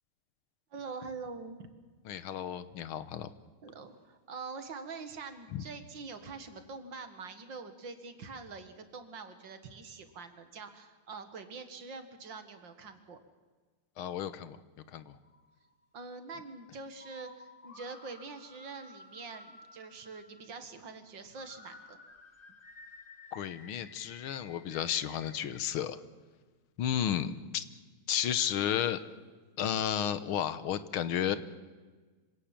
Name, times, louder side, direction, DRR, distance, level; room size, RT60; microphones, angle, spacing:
voice 1, 0.7-1.7 3.6-13.2 15.9-22.0, right 4 dB, 60° right, 9 dB, 2.4 m, -45 dB
voice 2, 2.1-3.3 5.5-5.6 14.0-14.6 14.9-15.1 23.3-26.0 26.8-27.6 28.1-29.0 29.6-31.4, left 9 dB, 80° left, 14 dB, 1.9 m, -32 dB
sound 1, 15.2-16.0 16.9-21.0 21.4-25.6, left 2 dB, 30° left, 1.4 m, -54 dB
25.5 x 17.0 x 7.5 m, 1.4 s
omnidirectional pair, 2.3 m